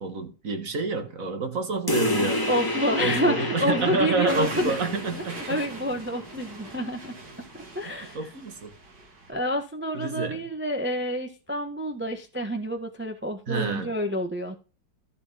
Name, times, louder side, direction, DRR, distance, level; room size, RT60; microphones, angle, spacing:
voice 1, 0.0-2.5 3.0-5.6 7.9-8.7 9.9-10.4 13.5-13.9, right 4 dB, 45° right, 1.8 m, -28 dB
sound 1, 1.9-6.9, left 2 dB, 15° left, 1.2 m, -30 dB
voice 2, 2.5-4.8 5.1-7.1 7.7-8.3 9.3-14.6, equal, 5° right, 1.0 m, -28 dB
sound 2, 4.3-9.3, right 3 dB, 60° right, 3.2 m, -40 dB
13.0 x 7.1 x 3.5 m
omnidirectional pair, 2.1 m